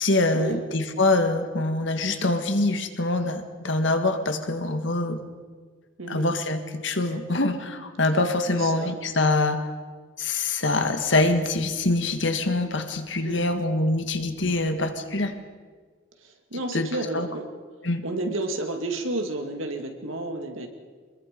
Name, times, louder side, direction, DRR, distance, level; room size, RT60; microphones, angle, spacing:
voice 1, 0.0-5.2 6.1-9.6 10.2-15.3 16.7-16.9 17.1-17.3 17.8-18.0, left 2 dB, 65° left, 7 dB, 1.8 m, -24 dB
voice 2, 6.0-6.3 8.5-9.0 13.2-13.6 16.2-17.5 18.0-20.7, right 2 dB, 85° right, 4 dB, 2.3 m, -31 dB
25.0 x 21.5 x 5.3 m, 1.5 s
head